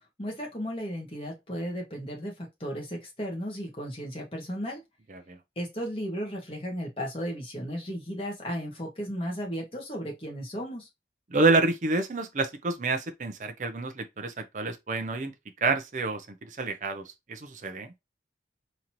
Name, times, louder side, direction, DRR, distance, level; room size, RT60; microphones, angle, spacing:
voice 1, 0.2-4.8 5.5-10.9, equal, 30° left, 1.5 m, -35 dB
voice 2, 11.3-15.3 15.6-17.9, right 3 dB, 45° right, 0.5 m, -28 dB
3.9 x 2.9 x 2.9 m
head